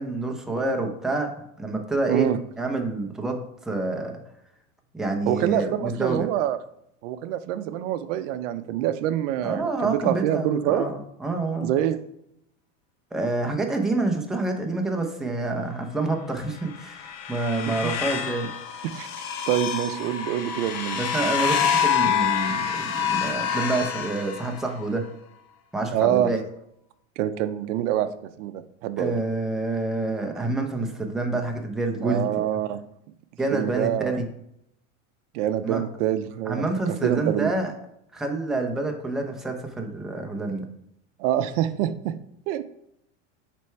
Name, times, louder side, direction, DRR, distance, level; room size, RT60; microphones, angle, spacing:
voice 1, 0.0-2.3 2.6-4.2 4.9-6.3 9.4-11.7 13.1-18.5 20.9-25.0 25.7-26.4 29.0-32.3 33.4-34.3 35.6-35.8 36.5-37.7 38.1-40.6, right 2 dB, ahead, 2 dB, 0.6 m, -27 dB
voice 2, 2.1-2.4 5.3-6.6 7.0-10.9 11.6-12.0 17.7-17.9 18.9-19.1 19.5-21.0 25.9-26.3 27.2-28.1 28.4-29.2 32.0-32.8 33.5-34.2 35.3-36.7 37.0-37.5 41.2-42.1 42.5-42.6, right 11 dB, 70° right, 11 dB, 0.6 m, -25 dB
sound 1, 16.6-24.9, left 8 dB, 45° left, 0.8 m, -27 dB
6.1 x 3.4 x 4.5 m, 0.76 s
supercardioid pair, 130°, 38 cm